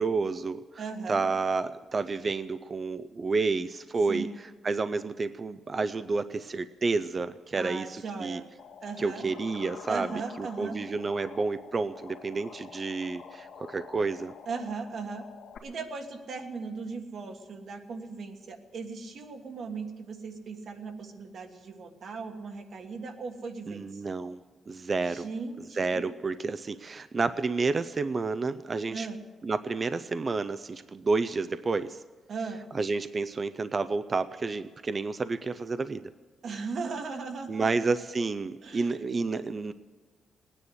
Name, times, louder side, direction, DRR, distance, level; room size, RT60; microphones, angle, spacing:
voice 1, 0.0-0.6 1.1-4.3 4.6-8.4 9.0-10.1 10.4-14.3 23.7-24.4 24.7-25.3 25.8-29.1 29.4-32.0 32.7-36.0 37.5-39.7, right 4 dB, 30° right, 12 dB, 0.4 m, -30 dB
voice 2, 0.8-1.2 4.1-4.3 7.6-8.5 8.8-9.2 9.9-10.8 14.5-15.3 15.6-24.0 25.0-26.0 28.9-29.2 32.3-32.6 36.4-37.7 38.6-39.0, right 4 dB, 60° right, 5 dB, 1.6 m, -38 dB
sound 1, 8.6-15.6, left 6 dB, 85° left, 1.8 m, -47 dB
19.0 x 9.8 x 7.8 m, 1.3 s
cardioid pair, 135°, 0 cm